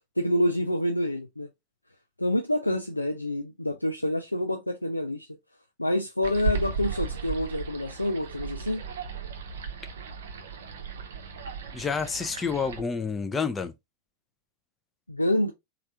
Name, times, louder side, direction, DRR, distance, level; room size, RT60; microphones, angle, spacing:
voice 1, 0.2-1.5 2.2-5.3 5.8-8.8 15.1-15.5, left 1 dB, 85° left, 0.3 m, -27 dB
sound 1, 6.2-12.8, right 4 dB, 60° right, 0.6 m, -35 dB
voice 2, 11.7-13.7, left 5 dB, 15° left, 0.4 m, -29 dB
3.2 x 2.4 x 2.6 m
figure-of-eight pair, 90°, 0 cm